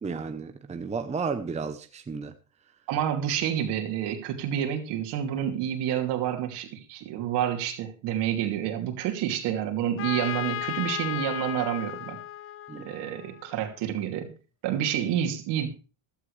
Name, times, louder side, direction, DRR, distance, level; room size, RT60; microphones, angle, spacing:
voice 1, 0.0-2.3 12.7-12.9, right 5 dB, 15° right, 0.9 m, -33 dB
voice 2, 2.9-12.2 12.8-14.3 14.6-15.7, right 10 dB, 60° right, 2.8 m, -29 dB
Trumpet, 10.0-13.7, left 12 dB, 30° left, 0.6 m, -35 dB
15.5 x 12.0 x 3.3 m
supercardioid pair, 115°, 45 cm